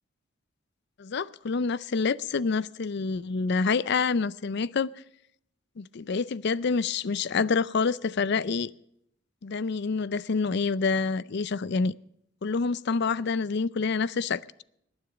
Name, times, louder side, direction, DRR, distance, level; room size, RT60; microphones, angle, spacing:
voice 1, 1.0-4.9 5.8-8.7 9.4-12.0 12.4-14.4, left 4 dB, 60° left, 0.5 m, -27 dB
19.0 x 9.8 x 5.0 m
head